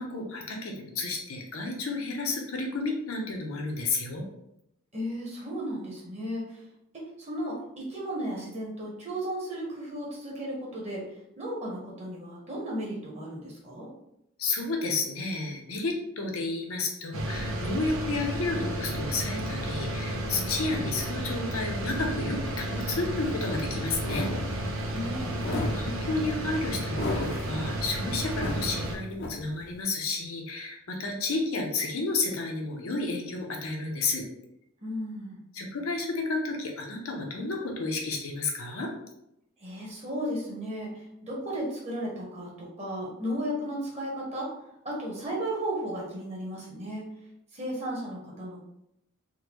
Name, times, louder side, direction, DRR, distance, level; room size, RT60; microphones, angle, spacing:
voice 1, 0.0-4.2 14.4-24.3 25.7-34.2 35.5-38.9, left 3 dB, 80° left, 1 dB, 0.7 m, -31 dB
voice 2, 4.9-6.6 6.9-13.9 24.9-25.6 34.8-35.4 39.6-44.5 44.8-47.1 47.5-48.6, equal, 30° right, -4 dB, 0.9 m, -35 dB
sound 1, 17.1-28.9, right 1 dB, 75° right, 0.6 m, -32 dB
sound 2, 23.2-29.8, left 1 dB, 50° left, 0.4 m, -36 dB
3.8 x 2.2 x 3.0 m, 0.80 s
head